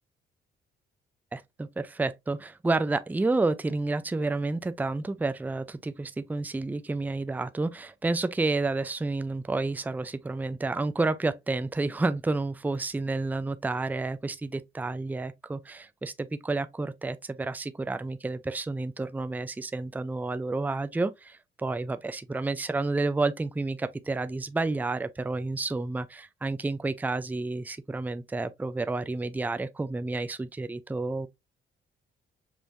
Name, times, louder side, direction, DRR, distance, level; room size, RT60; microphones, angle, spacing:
voice 1, 1.3-31.3, right 3 dB, 10° right, 0.4 m, -30 dB
5.5 x 3.0 x 2.5 m
cardioid pair, 90°, 20 cm